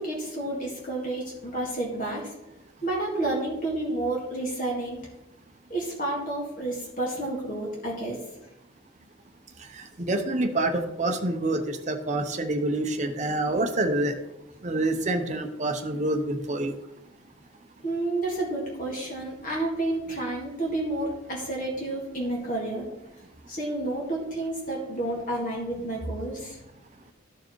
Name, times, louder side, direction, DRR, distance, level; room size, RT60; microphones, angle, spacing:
voice 1, 0.0-2.3 2.8-5.1 5.7-8.2 17.8-22.9 23.5-26.6, right 2 dB, 45° left, -3 dB, 1.9 m, -30 dB
voice 2, 9.6-14.2 14.6-16.7, right 2 dB, 40° right, 5 dB, 0.8 m, -27 dB
13.0 x 4.6 x 3.1 m, 0.92 s
head